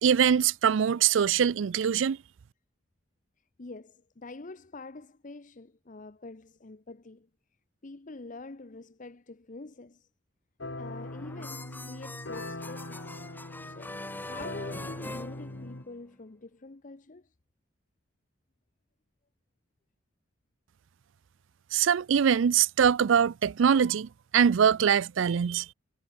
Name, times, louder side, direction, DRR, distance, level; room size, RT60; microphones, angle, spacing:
voice 1, 0.0-2.2 21.7-25.7, right 8 dB, 80° right, 0.4 m, -23 dB
voice 2, 3.6-7.3 7.8-10.1 10.7-13.1 13.6-17.3, left 3 dB, 40° left, 0.8 m, -46 dB
sound 1, 10.6-15.8, left 2 dB, 70° left, 2.8 m, -41 dB
sound 2, 10.8-16.2, left 2 dB, 10° left, 1.3 m, -43 dB
head